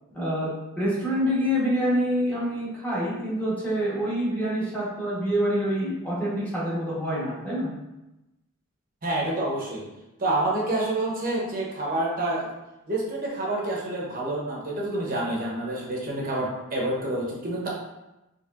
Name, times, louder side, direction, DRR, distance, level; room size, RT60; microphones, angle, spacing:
voice 1, 0.1-0.5 0.7-7.7, equal, 5° left, -8 dB, 1.2 m, -26 dB
voice 2, 9.0-9.8 10.2-12.5 12.9-17.7, right 2 dB, 40° right, -3 dB, 0.9 m, -28 dB
4.5 x 3.1 x 2.5 m, 0.97 s
head